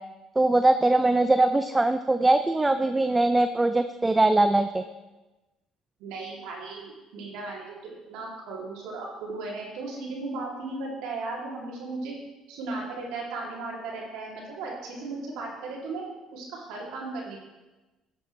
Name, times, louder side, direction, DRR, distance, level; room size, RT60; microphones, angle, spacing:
voice 1, 0.4-4.8, right 2 dB, 15° right, 9 dB, 0.5 m, -21 dB
voice 2, 6.0-12.1 12.5-16.1 16.3-17.4, right 3 dB, 75° right, -3 dB, 2.7 m, -36 dB
12.5 x 7.7 x 3.2 m, 1.1 s
supercardioid pair, 70°, 0 cm